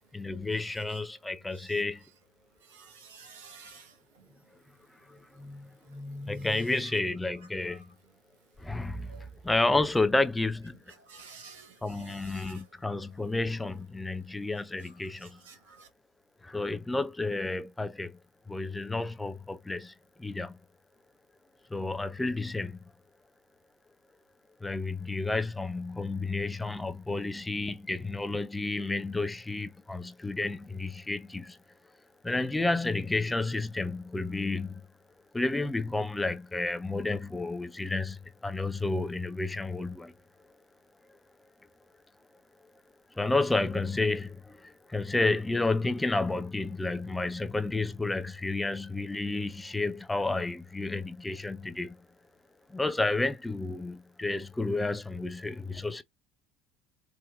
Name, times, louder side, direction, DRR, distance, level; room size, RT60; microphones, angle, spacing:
voice 1, 0.1-2.0 5.1-7.8 8.6-9.1 9.4-10.7 11.8-15.4 16.4-18.2 18.5-19.9 20.2-20.6 21.7-22.8 24.6-31.6 32.2-34.8 35.3-40.1 43.2-52.0 52.7-56.0, left 2 dB, 10° left, 0.4 m, -31 dB
voice 2, 2.7-3.9 6.5-6.8 7.7-7.8 9.1-9.3 11.1-12.6 15.4-15.9, right 5 dB, 70° right, 1.1 m, -51 dB
3.5 x 2.7 x 2.2 m
figure-of-eight pair, 65°, 0 cm